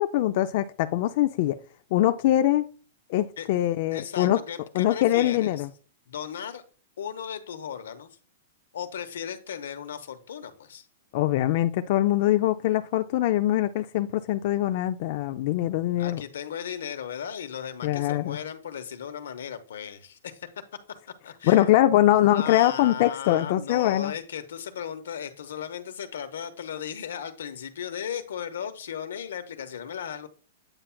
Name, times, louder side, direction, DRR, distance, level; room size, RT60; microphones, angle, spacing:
voice 1, 0.0-1.6 1.9-2.7 3.1-4.4 4.7-5.7 11.1-16.2 17.8-18.4 21.4-24.1, left 14 dB, 45° left, 0.3 m, -23 dB
voice 2, 3.9-5.5 6.1-6.6 7.0-8.1 8.7-10.8 16.0-20.5 21.2-21.7 22.3-30.3, left 8 dB, 85° left, 0.9 m, -36 dB
8.8 x 5.6 x 2.2 m
hypercardioid pair, 155°, 0 cm